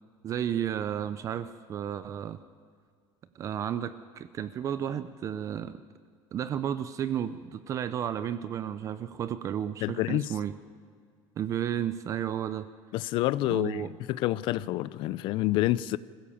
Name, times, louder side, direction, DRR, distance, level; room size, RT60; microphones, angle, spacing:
voice 1, 0.2-2.4 3.3-5.8 6.3-10.6 11.4-12.7 13.5-13.9, right 9 dB, 30° right, 13 dB, 0.5 m, -32 dB
voice 2, 9.8-10.3 12.9-16.0, left 16 dB, 50° left, 18 dB, 0.6 m, -28 dB
25.5 x 16.0 x 7.2 m, 2.1 s
cardioid pair, 180°, 11 cm